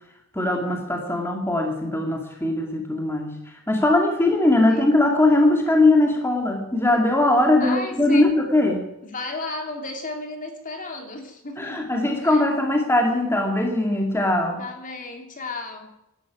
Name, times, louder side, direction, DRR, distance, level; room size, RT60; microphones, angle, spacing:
voice 1, 0.3-3.4 3.7-8.9 11.6-14.6, left 2 dB, 10° left, 1 dB, 2.3 m, -20 dB
voice 2, 4.6-5.0 7.6-8.3 9.0-11.8 12.2-12.6 14.6-15.9, left 3 dB, 40° left, 4 dB, 3.0 m, -34 dB
17.0 x 12.0 x 6.2 m, 0.87 s
head